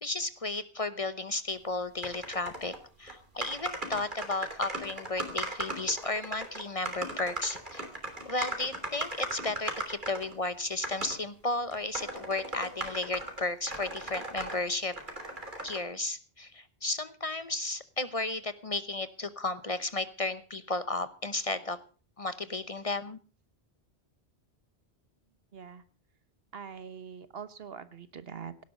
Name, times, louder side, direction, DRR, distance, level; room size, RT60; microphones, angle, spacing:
voice 1, 0.0-7.8 8.3-14.9 15.6-21.8 22.2-23.2, left 2 dB, 35° left, 13 dB, 0.9 m, -34 dB
sound 1, 2.0-2.8 3.1-3.2 3.4-10.4 10.8-11.2 11.7-14.6 14.9-15.8, right 2 dB, 50° right, 3.3 m, -37 dB
voice 2, 25.5-25.8 26.5-28.7, right 7 dB, 65° right, 13 dB, 1.3 m, -43 dB
17.0 x 12.0 x 5.3 m, 0.37 s
omnidirectional pair, 1.1 m